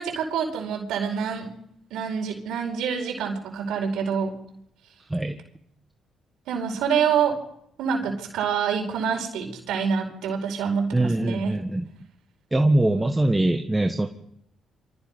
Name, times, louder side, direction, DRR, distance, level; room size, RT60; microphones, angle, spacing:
voice 1, 0.0-1.5 1.9-4.3 6.5-7.4 7.8-11.6, right 6 dB, 90° right, 1 dB, 4.9 m, -26 dB
voice 2, 10.9-11.9 12.5-14.1, right 1 dB, 10° right, 5 dB, 1.6 m, -22 dB
29.5 x 25.0 x 5.5 m, 0.75 s
cardioid pair, 90°, 0 cm